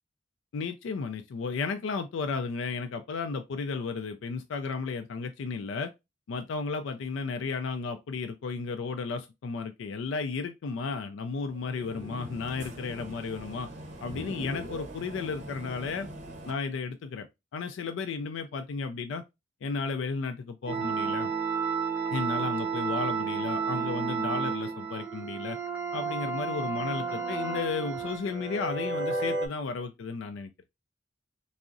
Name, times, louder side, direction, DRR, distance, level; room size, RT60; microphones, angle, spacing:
voice 1, 0.5-5.9 6.3-13.7 14.0-16.1 16.4-17.3 17.5-19.2 19.6-21.3 22.1-25.6 25.9-30.5, left 4 dB, 85° left, 0.3 m, -33 dB
sound 1, 11.5-16.5, right 1 dB, 40° right, 0.8 m, -42 dB
sound 2, 20.7-29.5, right 5 dB, 5° right, 0.6 m, -31 dB
3.5 x 2.0 x 2.5 m
head